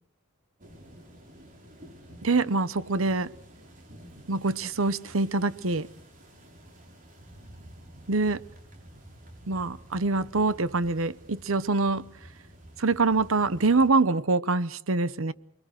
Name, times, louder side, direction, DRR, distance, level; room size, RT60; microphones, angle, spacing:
sound 1, 0.6-13.9, right 1 dB, 40° right, 5.6 m, -50 dB
voice 1, 2.2-3.3 4.3-5.9 8.1-8.4 9.5-12.1 12.8-15.3, right 3 dB, 90° right, 1.0 m, -25 dB
29.0 x 21.5 x 6.4 m
head